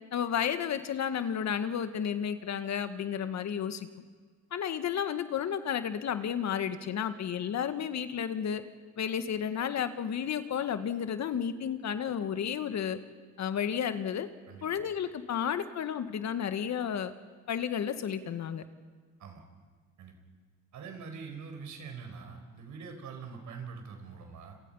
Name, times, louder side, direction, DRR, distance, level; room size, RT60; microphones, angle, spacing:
voice 1, 0.1-3.9 4.5-8.6 9.0-13.0 13.4-14.3 14.6-17.1 17.5-18.6, left 8 dB, 65° left, 10 dB, 1.7 m, -32 dB
voice 2, 14.5-14.8 19.2-19.4 20.0-20.1 20.7-24.6, right 5 dB, 75° right, 4 dB, 5.0 m, -44 dB
29.0 x 28.0 x 5.6 m, 1.5 s
cardioid pair, 90°, 30 cm